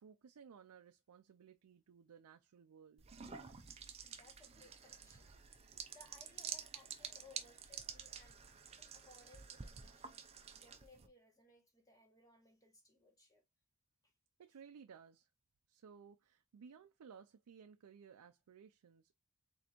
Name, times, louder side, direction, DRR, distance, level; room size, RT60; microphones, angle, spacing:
voice 1, 0.0-3.1 14.4-15.3 15.7-19.2, right 6 dB, 90° right, 0.4 m, -59 dB
sound 1, 3.0-11.1, right 7 dB, 25° right, 0.6 m, -50 dB
voice 2, 3.8-5.3 5.9-8.4 8.8-10.2 10.5-13.4 14.0-14.1, left 2 dB, 15° left, 1.4 m, -64 dB
4.2 x 3.7 x 2.9 m
head